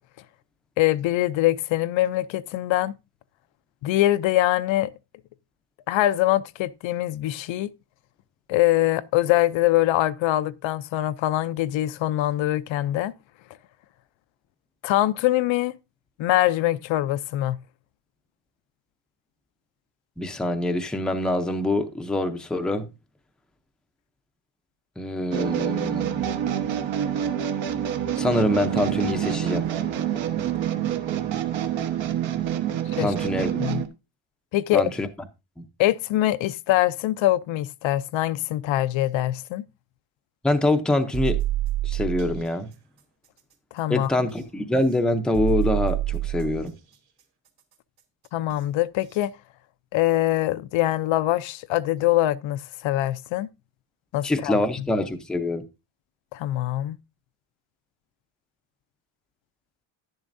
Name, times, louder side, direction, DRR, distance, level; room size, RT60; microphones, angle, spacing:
voice 1, 0.8-2.9 3.8-4.9 5.9-7.7 8.5-13.1 14.8-15.7 16.2-17.6 33.0-33.1 33.6-33.8 34.5-34.8 35.8-39.6 43.7-44.1 48.3-49.3 49.9-53.5 54.1-54.6 56.3-57.0, left 15 dB, 70° left, 0.6 m, -23 dB
voice 2, 20.2-22.9 25.0-26.3 28.2-29.6 33.0-33.6 34.7-35.1 40.4-41.4 41.8-42.7 43.9-46.7 54.2-55.6, left 1 dB, ahead, 0.5 m, -25 dB
sound 1, 25.3-33.9, right 10 dB, 65° right, 1.2 m, -27 dB
sound 2, 41.1-42.4 44.3-44.4 45.3-46.7 48.5-48.6 49.1-49.2, right 13 dB, 50° right, 2.0 m, -27 dB
11.0 x 10.5 x 2.6 m
cardioid pair, 180°, 48 cm